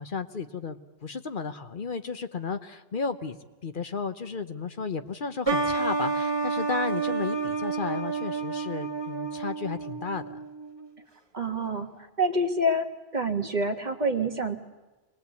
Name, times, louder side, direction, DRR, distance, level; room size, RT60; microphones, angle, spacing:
voice 1, 0.0-10.2, left 5 dB, 55° left, 9 dB, 1.1 m, -33 dB
sound 1, 5.5-10.9, right 4 dB, 25° right, 1.4 m, -30 dB
voice 2, 11.3-12.9 13.1-14.6, right 1 dB, 45° right, 5 dB, 1.6 m, -27 dB
24.5 x 19.5 x 8.3 m, 1.2 s
omnidirectional pair, 1.1 m